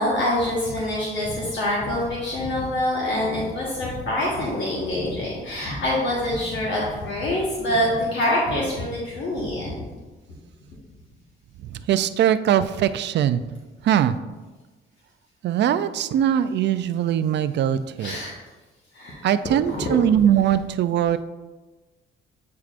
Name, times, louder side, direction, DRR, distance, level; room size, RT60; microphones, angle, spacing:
voice 1, 0.0-9.9 18.0-18.3 18.9-19.2 19.7-19.9, left 1 dB, 65° left, -5 dB, 1.4 m, -25 dB
voice 2, 11.9-13.4 13.8-14.2 15.4-18.2 19.2-21.2, right 10 dB, 60° right, 12 dB, 0.4 m, -21 dB
8.4 x 4.7 x 2.5 m, 1.2 s
cardioid pair, 90°, 20 cm